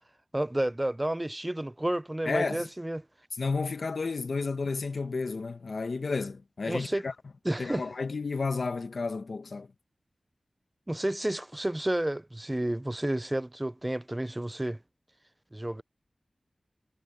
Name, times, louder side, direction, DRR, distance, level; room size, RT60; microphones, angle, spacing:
voice 1, 0.3-3.0 6.7-7.1 7.4-7.9 10.9-14.8 15.5-15.8, right 1 dB, 20° right, 0.4 m, -31 dB
voice 2, 2.2-2.7 3.3-7.1 7.6-9.7, left 4 dB, 85° left, 1.2 m, -32 dB
wide cardioid pair, 75°, 0 cm